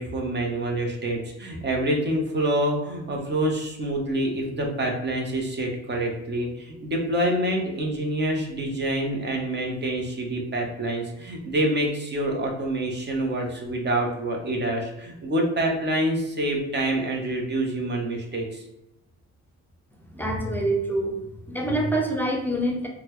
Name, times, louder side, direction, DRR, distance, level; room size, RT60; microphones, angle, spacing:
voice 1, 0.0-18.6, right 1 dB, 35° right, 1 dB, 0.9 m, -26 dB
voice 2, 20.1-21.2 21.5-22.9, right 1 dB, 5° left, 0 dB, 0.7 m, -25 dB
3.9 x 2.2 x 3.0 m, 0.92 s
cardioid pair, 90°, 30 cm